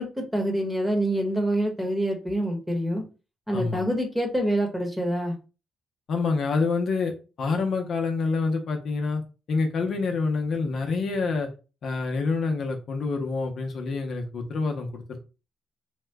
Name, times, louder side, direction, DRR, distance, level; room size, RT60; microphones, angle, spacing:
voice 1, 0.0-3.0 3.5-5.3, right 1 dB, 5° right, 2 dB, 1.1 m, -26 dB
voice 2, 3.5-3.8 6.1-7.1 7.4-9.2 9.5-11.5 11.8-15.2, left 4 dB, 60° left, 2 dB, 0.7 m, -27 dB
2.8 x 2.2 x 3.4 m, 0.32 s
cardioid pair, 90°, 0 cm